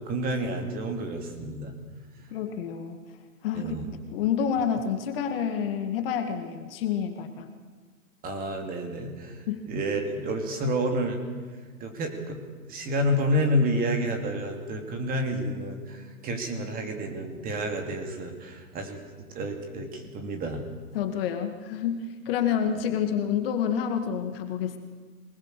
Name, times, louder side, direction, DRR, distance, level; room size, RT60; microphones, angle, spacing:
voice 1, 0.0-1.7 3.5-3.8 8.2-9.4 9.7-11.2 11.8-12.4 12.7-19.0 19.3-20.6, equal, 20° right, 4 dB, 2.8 m, -29 dB
voice 2, 2.3-3.0 3.4-3.8 4.1-7.5 9.5-9.7 20.9-24.8, left 8 dB, 35° left, 6 dB, 2.0 m, -28 dB
25.5 x 20.0 x 6.7 m, 1.5 s
hypercardioid pair, 135°, 47 cm